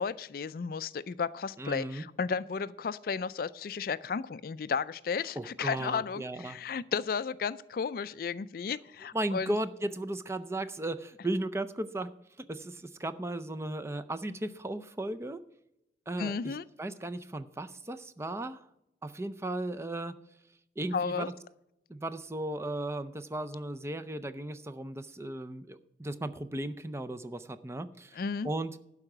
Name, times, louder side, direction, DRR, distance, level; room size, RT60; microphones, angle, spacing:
voice 1, 0.0-9.5 16.2-16.6 20.9-21.3 28.1-28.5, left 5 dB, 55° left, 17 dB, 0.4 m, -33 dB
voice 2, 1.6-2.1 5.4-6.6 9.1-12.1 12.5-15.4 16.1-18.7 19.0-20.1 20.8-21.3 21.9-28.2 28.4-28.8, right 1 dB, 15° right, 10 dB, 0.5 m, -36 dB
12.0 x 4.9 x 7.8 m, 0.84 s
head